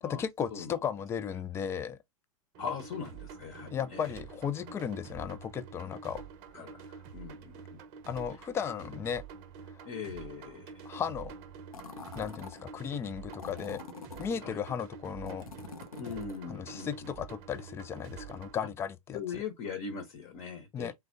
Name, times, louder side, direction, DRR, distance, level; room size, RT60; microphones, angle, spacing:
voice 1, 0.0-2.0 3.7-6.2 8.1-9.2 9.7-9.9 10.9-11.3 12.2-13.8 14.2-15.5 16.5-19.4 20.7-20.9, left 7 dB, 15° left, 0.3 m, -35 dB
sound 1, 2.5-18.5, right 6 dB, 45° right, 0.7 m, -48 dB
voice 2, 2.6-4.1 4.6-4.8 6.5-7.8 9.8-10.8 14.4-14.6 16.0-17.1 19.1-20.9, left 6 dB, 40° left, 0.9 m, -40 dB
sound 2, 11.7-12.6 13.3-14.4 15.3-16.5, left 4 dB, 80° left, 0.7 m, -45 dB
3.4 x 2.1 x 2.6 m
figure-of-eight pair, 95°, 18 cm